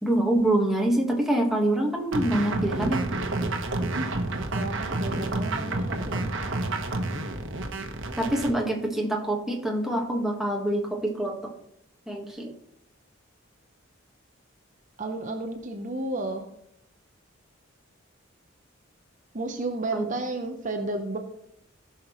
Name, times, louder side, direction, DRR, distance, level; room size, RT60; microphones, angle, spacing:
voice 1, 0.0-3.1 8.2-11.5 12.1-12.5 19.9-20.0, right 1 dB, ahead, -1 dB, 1.4 m, -25 dB
sound 1, 2.1-8.5, right 2 dB, 65° right, 1.1 m, -29 dB
voice 2, 4.5-6.3 15.0-16.4 19.3-21.2, right 2 dB, 40° right, 4 dB, 0.7 m, -32 dB
16.5 x 5.7 x 3.0 m, 0.76 s
head